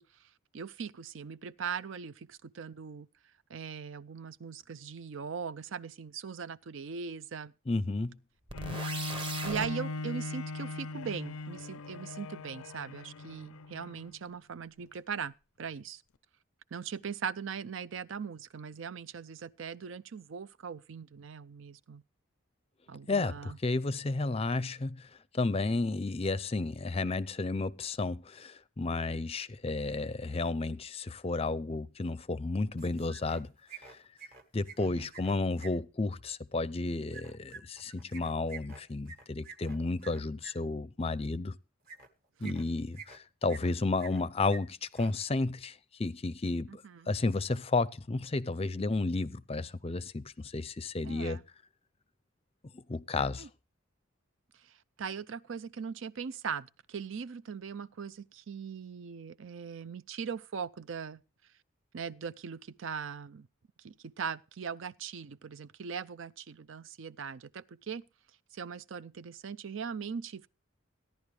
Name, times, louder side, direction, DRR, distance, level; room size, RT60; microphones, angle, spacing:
voice 1, 0.0-3.1 3.5-7.5 8.8-9.1 9.4-16.0 16.7-22.0 22.9-23.6 34.8-35.1 42.4-42.6 46.7-47.1 51.0-51.4 53.4-53.5 54.5-61.2 61.9-63.5 63.8-68.0 68.5-70.5, right 6 dB, 65° right, 0.5 m, -40 dB
voice 2, 7.7-8.2 23.1-33.5 33.9-34.0 34.5-41.6 42.4-51.4 52.7-53.5, left 3 dB, 30° left, 0.5 m, -32 dB
Bowed string instrument, 8.5-14.2 14.8-14.9, left 3 dB, 85° left, 0.5 m, -39 dB
sound 1, 8.5-9.7, right 3 dB, 25° right, 1.1 m, -38 dB
sound 2, 32.8-33.4 33.7-35.7 37.1-40.5 41.8-42.1 42.4-43.2 43.5-44.2 44.5-44.6 44.9-45.1, right 5 dB, 45° right, 1.6 m, -48 dB
16.0 x 10.5 x 3.2 m
head